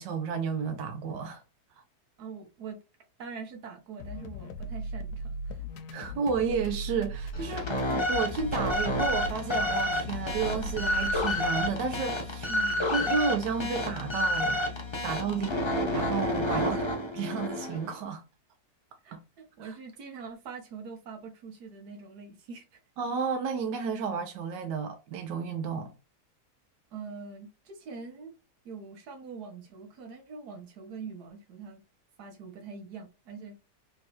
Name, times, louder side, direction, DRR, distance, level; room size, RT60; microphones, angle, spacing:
voice 1, 0.0-1.4 5.9-12.5 12.9-14.6 15.0-15.5 15.8-16.8 17.2-18.2 19.1-19.2 19.6-19.7 23.0-25.9, right 5 dB, 90° right, 1.3 m, -32 dB
voice 2, 2.2-2.8 3.2-5.6 12.5-12.9 15.3-15.7 16.6-17.0 19.0-22.8 26.9-28.3 28.6-31.8 32.2-33.7, right 5 dB, 70° right, 1.5 m, -43 dB
sound 1, 4.0-12.1, equal, 80° left, 1.1 m, -38 dB
sound 2, 7.3-17.9, left 1 dB, 35° left, 0.4 m, -30 dB
3.5 x 3.0 x 2.9 m
omnidirectional pair, 1.8 m